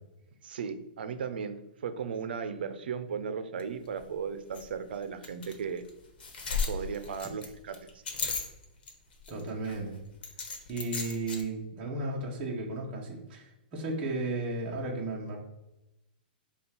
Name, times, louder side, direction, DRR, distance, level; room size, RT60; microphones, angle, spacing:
voice 1, 0.4-5.8 6.7-8.0, right 6 dB, 80° right, 10 dB, 0.6 m, -36 dB
sound 1, 3.6-3.7 4.0-4.1 4.5-4.6 5.2-5.5 5.9-6.0 6.2-8.9 9.2-9.8 10.2-11.4, left 5 dB, 70° left, 1.1 m, -34 dB
voice 2, 9.3-10.0 10.7-15.4, right 2 dB, 20° right, -4 dB, 0.8 m, -34 dB
5.2 x 2.4 x 4.3 m, 0.93 s
hypercardioid pair, 170°, 5 cm